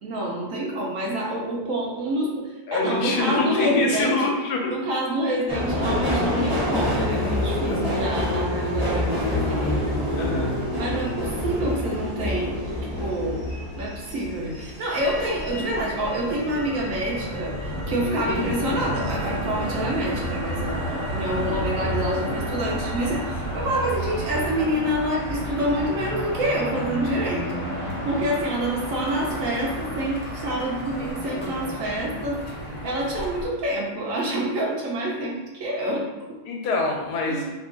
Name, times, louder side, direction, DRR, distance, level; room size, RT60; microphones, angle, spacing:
voice 1, 0.0-4.2 4.7-10.0 10.7-12.5 13.0-13.5 13.8-17.5 17.9-27.6 28.1-32.4 32.8-36.4 37.3-37.5, right 1 dB, 65° right, -3 dB, 0.9 m, -27 dB
voice 2, 2.7-4.7 6.3-6.5 7.7-8.0 10.2-10.6 18.2-18.5 21.4-21.7 36.4-37.5, left 3 dB, 85° left, 0 dB, 1.2 m, -25 dB
Subway metro underground, 5.5-16.2 16.6-17.3 17.6-17.7, left 1 dB, 20° right, 1.2 m, -27 dB
Motor vehicle (road), 14.9-33.4, equal, 55° left, 0.3 m, -31 dB
2.9 x 2.4 x 3.6 m, 1.1 s
omnidirectional pair, 1.7 m